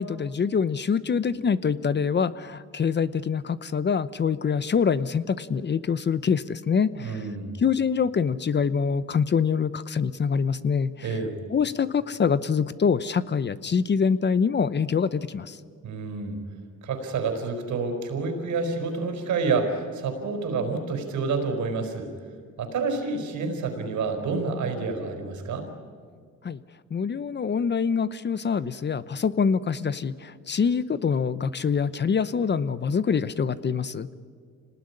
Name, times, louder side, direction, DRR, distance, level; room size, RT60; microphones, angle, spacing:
voice 1, 0.0-7.2 7.6-11.1 11.5-15.6 26.4-26.6 26.9-34.1, left 6 dB, 35° left, 16 dB, 0.8 m, -25 dB
voice 2, 7.0-7.5 11.0-11.3 15.8-16.4 16.8-22.1 22.6-25.7, right 4 dB, 70° right, 5 dB, 4.8 m, -28 dB
26.0 x 19.5 x 9.9 m, 2.1 s
cardioid pair, 90°, 30 cm